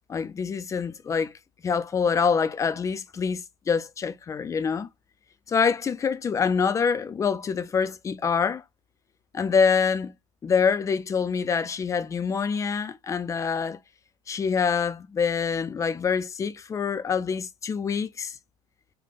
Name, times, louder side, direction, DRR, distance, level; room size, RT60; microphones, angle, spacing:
voice 1, 0.1-1.3 1.6-4.9 5.5-8.6 9.3-10.1 10.4-13.8 14.3-18.3, left 6 dB, 20° left, 0.4 m, -25 dB
3.4 x 2.2 x 3.7 m
supercardioid pair, 125°, 17 cm